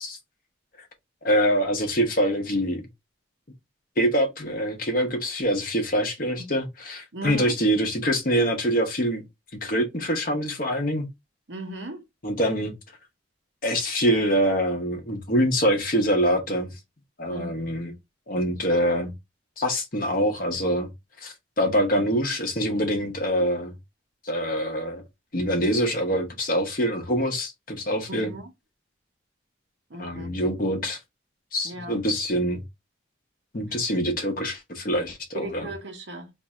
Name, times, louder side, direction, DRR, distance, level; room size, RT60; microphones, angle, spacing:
voice 1, 1.2-2.9 4.0-9.2 9.5-11.1 12.2-12.7 13.6-16.7 17.2-17.9 18.3-19.1 19.6-20.9 21.2-23.7 24.2-25.0 25.3-28.3 30.0-31.0 31.5-32.6 33.5-35.7, equal, 45° left, 0.9 m, -25 dB
voice 2, 7.1-7.6 11.5-12.0 17.3-17.5 28.1-28.5 29.9-30.3 31.6-32.0 33.7-33.8 35.3-36.3, right 1 dB, 65° right, 0.9 m, -37 dB
2.6 x 2.4 x 4.1 m
head